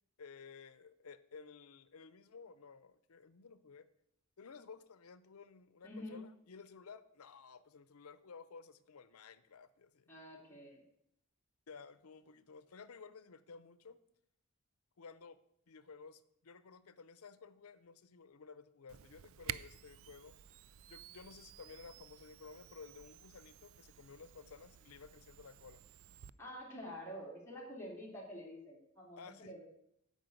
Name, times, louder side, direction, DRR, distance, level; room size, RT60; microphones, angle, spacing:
voice 1, 0.2-3.9 4.4-10.1 11.7-14.0 15.0-15.4 15.7-20.4 20.9-25.8 29.2-29.5, left 5 dB, 90° left, 15 dB, 0.6 m, -55 dB
voice 2, 5.8-6.2 10.1-10.8 26.4-29.6, equal, 10° left, -4 dB, 2.6 m, -48 dB
Camera, 18.9-26.3, right 10 dB, 70° right, 0.4 m, -51 dB
9.1 x 5.2 x 7.8 m, 0.77 s
head